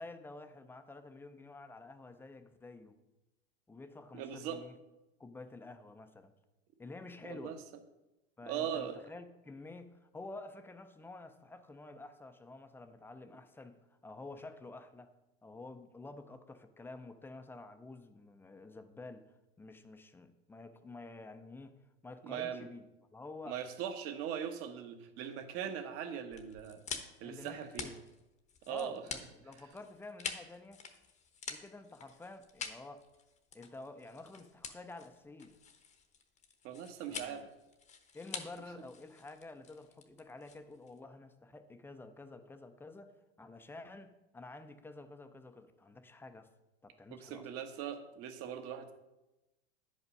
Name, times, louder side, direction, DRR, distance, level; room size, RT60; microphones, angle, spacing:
voice 1, 0.0-2.9 3.7-4.8 5.2-6.3 6.8-7.6 8.4-15.1 15.4-21.7 22.0-22.9 23.1-23.6 27.2-28.0 28.7-30.8 31.5-33.0 33.5-35.5 37.1-37.5 38.1-46.5 46.8-47.5, left 2 dB, 5° left, 8 dB, 0.5 m, -50 dB
voice 2, 4.1-4.6 7.2-7.6 8.5-9.0 22.2-22.7 23.5-26.8 27.2-27.9 28.7-29.0 36.6-37.5 47.1-48.9, right 9 dB, 45° right, 7 dB, 1.2 m, -40 dB
sound 1, 26.3-41.0, left 6 dB, 20° left, 0.9 m, -47 dB
9.8 x 5.5 x 5.3 m, 0.99 s
hypercardioid pair, 115°, 32 cm